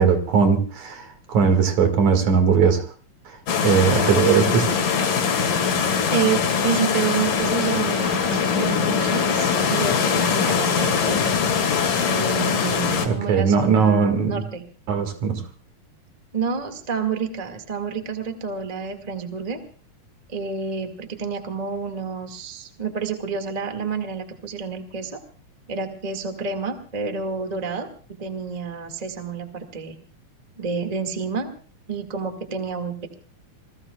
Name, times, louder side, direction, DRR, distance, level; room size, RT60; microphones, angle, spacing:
voice 1, 0.0-2.8 3.6-4.8 13.0-14.4 14.9-15.4, right 6 dB, 65° right, 6 dB, 3.2 m, -19 dB
sound 1, 3.5-13.1, left 6 dB, 80° left, 3.7 m, -22 dB
voice 2, 6.1-11.3 12.0-14.6 16.3-19.6 20.3-25.2 25.7-29.9 30.6-31.5 31.9-33.1, right 5 dB, 20° right, 5 dB, 1.3 m, -29 dB
27.5 x 20.5 x 2.3 m, 0.40 s
omnidirectional pair, 3.7 m